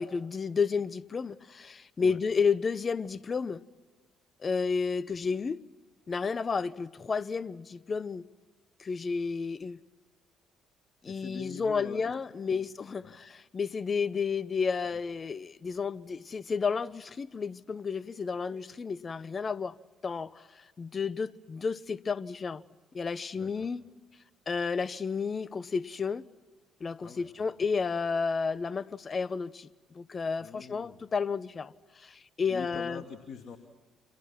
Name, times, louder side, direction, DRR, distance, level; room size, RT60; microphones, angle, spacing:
voice 1, 0.0-3.6 4.4-5.6 6.1-8.3 8.8-9.8 11.0-19.8 20.0-22.6 22.9-23.8 24.5-26.3 26.8-29.7 29.9-31.7 32.0-33.0, left 5 dB, 40° left, 1.1 m, -31 dB
voice 2, 11.0-12.1 12.5-12.6 13.0-13.2 23.3-23.7 27.0-27.3 30.4-31.0 32.5-33.6, left 6 dB, 55° left, 2.5 m, -44 dB
30.0 x 27.5 x 6.0 m
hypercardioid pair, 55°, 0 cm